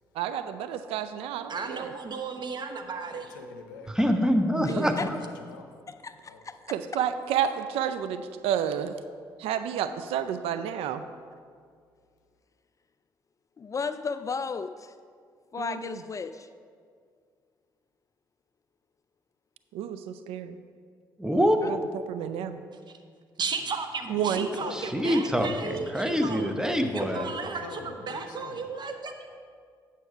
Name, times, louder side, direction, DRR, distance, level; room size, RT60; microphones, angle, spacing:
voice 1, 0.2-1.9 4.7-4.9 6.7-9.0 9.4-11.0 15.6-15.8 19.7-20.5 21.7-22.6 24.1-24.5, right 9 dB, 65° right, 10 dB, 0.4 m, -30 dB
voice 2, 1.5-3.3 23.4-26.5 26.9-27.8 28.1-29.2, right 4 dB, 45° right, 6 dB, 0.9 m, -34 dB
voice 3, 2.8-3.9 5.0-5.7 6.3-6.5 24.1-24.9 25.2-25.3 26.7-28.7, left 4 dB, 85° left, 5 dB, 0.6 m, -44 dB
voice 4, 3.9-5.2 21.2-21.6 24.7-27.3, equal, 5° right, 5 dB, 0.9 m, -25 dB
voice 5, 4.6-5.1 5.9-6.8 13.6-15.0 15.5-16.5 21.6-21.7, left 5 dB, 30° left, 12 dB, 0.3 m, -34 dB
9.0 x 5.6 x 4.9 m, 2.1 s
hypercardioid pair, 45°, 11 cm